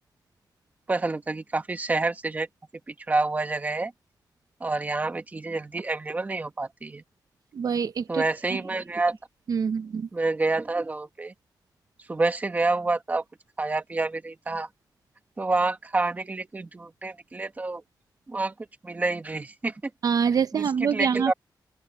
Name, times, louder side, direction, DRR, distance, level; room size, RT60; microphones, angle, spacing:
voice 1, 0.9-2.5 2.9-3.9 4.6-7.0 8.1-9.2 10.1-11.3 12.1-13.2 13.6-14.7 15.4-17.8 18.3-18.5 18.8-19.9 20.5-21.3, right 3 dB, 20° right, 1.3 m, -28 dB
voice 2, 7.5-8.2 8.5-8.6 9.5-10.1 20.0-21.3, right 6 dB, 55° right, 0.7 m, -25 dB
open air
wide cardioid pair, 175°, 7 cm